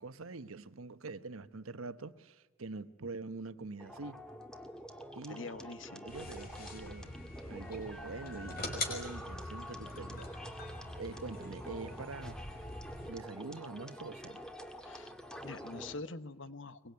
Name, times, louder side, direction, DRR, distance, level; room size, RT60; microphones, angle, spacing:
voice 1, 0.0-4.2 5.1-5.5 6.0-7.1 7.5-12.4 13.1-14.5, right 3 dB, 90° right, 1.1 m, -45 dB
sound 1, 3.8-16.0, equal, 5° left, 1.8 m, -47 dB
voice 2, 5.3-6.1 14.8-15.1 15.4-16.9, left 3 dB, 65° left, 1.2 m, -45 dB
sound 2, 6.1-13.1, left 2 dB, 45° left, 5.3 m, -44 dB
23.5 x 22.5 x 9.6 m
head